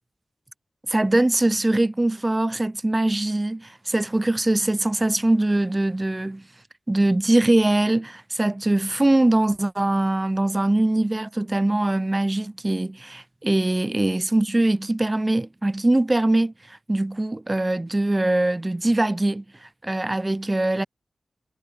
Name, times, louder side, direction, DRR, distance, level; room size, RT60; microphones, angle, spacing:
voice 1, 0.9-6.4 6.9-20.9, right 1 dB, 25° right, 3.6 m, -22 dB
cardioid pair, 55°, 0 cm